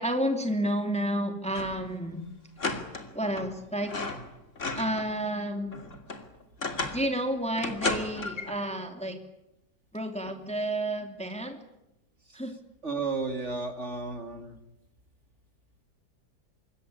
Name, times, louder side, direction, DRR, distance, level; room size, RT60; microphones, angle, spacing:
voice 1, 0.0-2.2 3.1-4.1 4.7-5.8 6.9-9.2 9.9-11.6 12.3-12.5, right 1 dB, 5° left, 5 dB, 2.6 m, -30 dB
sound 1, 1.5-1.9 2.1-2.2 2.6-3.5 3.8-5.1 5.5-7.1 7.6-8.6, left 3 dB, 40° left, 3.1 m, -34 dB
voice 2, 12.8-14.6, right 4 dB, 40° right, 6 dB, 3.5 m, -33 dB
26.0 x 21.5 x 9.7 m, 0.91 s
omnidirectional pair, 1.9 m